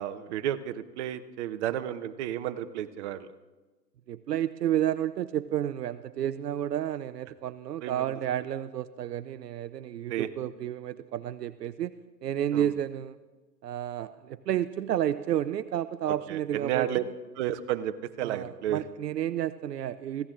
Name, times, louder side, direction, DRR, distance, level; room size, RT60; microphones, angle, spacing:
voice 1, 0.0-3.3 7.8-8.0 10.1-10.3 12.5-12.7 16.3-17.0 17.4-18.8, right 11 dB, 45° right, 10 dB, 1.0 m, -32 dB
voice 2, 4.1-11.9 12.2-13.2 13.6-17.0 18.2-20.3, right 11 dB, 70° right, 13 dB, 0.7 m, -31 dB
24.0 x 15.5 x 3.8 m, 1.2 s
hypercardioid pair, 120°, 49 cm